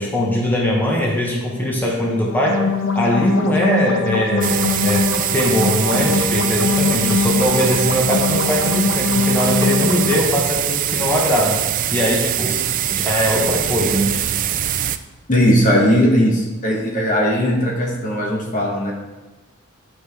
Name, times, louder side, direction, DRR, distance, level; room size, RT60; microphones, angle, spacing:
voice 1, 0.0-2.6 2.9-11.6 11.9-12.6 12.9-14.1, equal, 10° left, -3 dB, 1.2 m, -20 dB
sound 1, 2.2-10.2, left 4 dB, 65° left, 0.6 m, -22 dB
sound 2, 4.4-15.0, right 11 dB, 40° right, 0.3 m, -23 dB
voice 2, 15.3-18.9, equal, 40° left, -1 dB, 1.3 m, -18 dB
11.5 x 5.0 x 3.5 m, 1.1 s
head